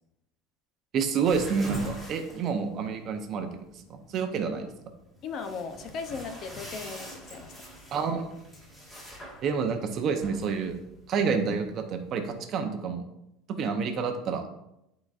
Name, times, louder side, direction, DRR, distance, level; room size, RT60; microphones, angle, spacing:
voice 1, 0.9-4.7 7.9-8.3 9.4-10.8 11.1-13.0 13.5-14.5, right 5 dB, 35° right, 6 dB, 0.7 m, -29 dB
sound 1, 1.2-12.4, equal, 10° left, 1.8 m, -45 dB
voice 2, 5.2-7.5, left 5 dB, 40° left, 7 dB, 0.7 m, -37 dB
12.0 x 4.0 x 2.5 m, 0.84 s
cardioid pair, 160°, 0 cm